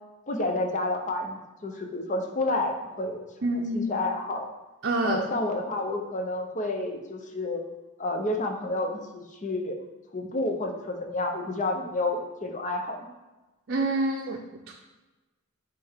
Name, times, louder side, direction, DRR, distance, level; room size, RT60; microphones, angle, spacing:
voice 1, 0.3-3.3 3.6-4.5 5.0-7.6 8.0-9.8 10.1-13.1, left 2 dB, 35° left, 3 dB, 0.8 m, -30 dB
voice 2, 3.4-3.9 4.8-5.2 13.7-14.7, right 2 dB, 50° right, -1 dB, 0.6 m, -27 dB
9.0 x 3.4 x 3.6 m, 1.1 s
head